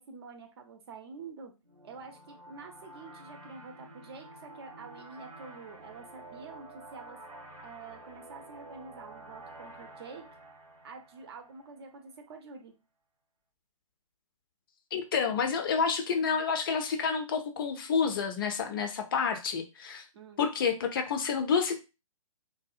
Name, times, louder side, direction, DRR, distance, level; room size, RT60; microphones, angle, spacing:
voice 1, 0.0-1.5 1.8-7.2 7.6-10.3 10.8-12.7 20.1-20.4, right 4 dB, 45° right, 4 dB, 0.6 m, -47 dB
sound 1, 1.6-12.0, right 2 dB, 85° right, 0.9 m, -50 dB
voice 2, 14.9-20.0 20.4-21.8, left 6 dB, 40° left, 6 dB, 0.4 m, -29 dB
2.7 x 2.1 x 2.4 m, 0.28 s
figure-of-eight pair, 130°, 18 cm